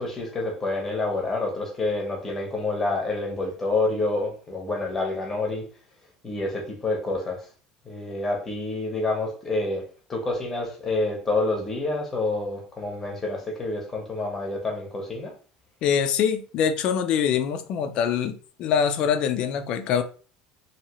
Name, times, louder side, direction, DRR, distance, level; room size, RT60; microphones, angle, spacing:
voice 1, 0.0-5.6 6.2-7.5 7.8-15.3, left 2 dB, 15° left, 0.9 m, -28 dB
voice 2, 15.8-20.0, left 7 dB, 40° left, 0.4 m, -24 dB
2.9 x 2.8 x 2.9 m
cardioid pair, 170°, 2 cm